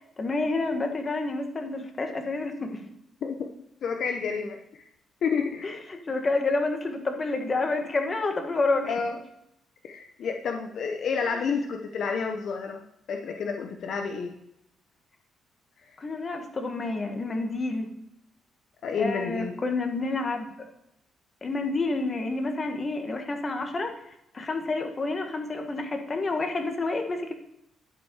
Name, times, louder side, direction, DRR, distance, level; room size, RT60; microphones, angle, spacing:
voice 1, 0.2-2.8 5.6-8.9 16.0-17.9 19.0-20.5 21.4-23.9 24.3-27.3, left 3 dB, 35° left, 4 dB, 1.7 m, -29 dB
voice 2, 3.8-4.6 5.2-5.7 8.8-9.1 9.8-12.8 13.1-14.3 18.8-19.6, left 5 dB, 65° left, 4 dB, 0.9 m, -29 dB
11.5 x 5.4 x 4.8 m, 0.82 s
cardioid pair, 90°, 0 cm